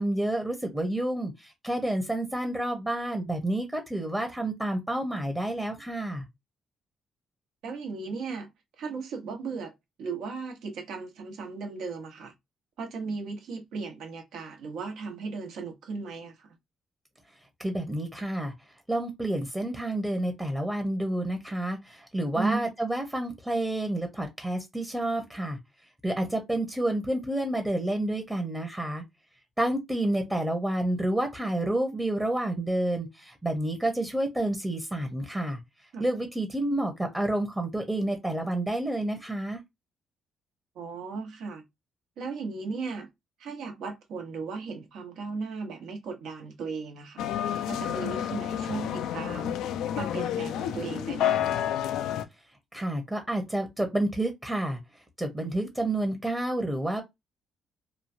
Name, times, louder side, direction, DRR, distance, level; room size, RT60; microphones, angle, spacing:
voice 1, 0.0-6.2 17.6-18.5 18.9-25.6 26.0-29.0 29.6-35.6 36.0-39.6 52.7-54.8 55.2-57.0, right 1 dB, 10° right, 0.8 m, -29 dB
voice 2, 7.6-8.5 8.8-9.7 10.0-12.3 12.8-16.5 22.3-22.7 35.9-36.0 40.7-41.6 42.2-43.1 43.4-47.3 47.7-49.6 49.9-51.8, right 4 dB, 80° right, 1.0 m, -36 dB
sound 1, 47.2-52.2, left 10 dB, 85° left, 0.4 m, -30 dB
3.0 x 2.3 x 2.6 m
cardioid pair, 90°, 0 cm